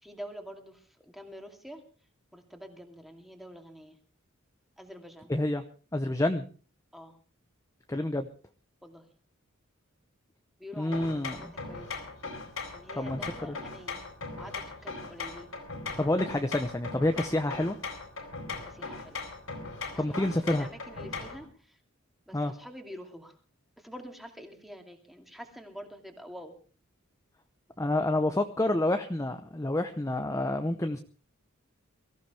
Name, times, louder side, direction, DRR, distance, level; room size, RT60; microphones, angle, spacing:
voice 1, 0.0-1.8 2.3-4.0 4.8-5.3 6.9-7.2 8.8-9.1 10.6-12.0 12.7-14.0 14.3-15.5 18.6-19.2 19.9-21.8 22.3-23.4 23.8-26.6, equal, ahead, 3 dB, 2.5 m, -46 dB
voice 2, 5.3-5.6 5.9-6.4 7.9-8.3 10.8-11.4 13.0-13.6 16.0-17.8 20.0-20.7 22.3-22.5 27.8-31.0, left 1 dB, 15° left, 7 dB, 0.8 m, -28 dB
sound 1, 10.9-21.5, left 4 dB, 80° left, 4.3 m, -39 dB
23.0 x 14.5 x 3.4 m, 0.38 s
head